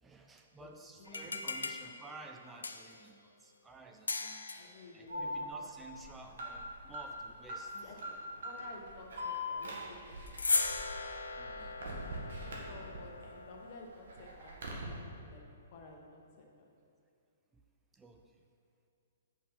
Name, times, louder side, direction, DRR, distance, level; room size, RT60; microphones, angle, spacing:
voice 1, 0.0-7.9 11.3-11.9 17.9-18.4, right 3 dB, 10° right, 3 dB, 0.4 m, -53 dB
sound 1, 1.0-3.1 4.1-4.8 10.3-13.8, left 3 dB, 90° left, 0.4 m, -38 dB
voice 2, 1.0-1.4 4.5-5.3 7.7-8.1 8.4-10.6 12.4-15.4 15.7-16.5, left 2 dB, 45° left, 1 dB, 1.2 m, -53 dB
Alarm, 5.1-13.2 13.6-14.8, left 1 dB, 70° right, 1.5 m, -42 dB
5.4 x 5.2 x 5.8 m, 2.4 s
hypercardioid pair, 130°, 0 cm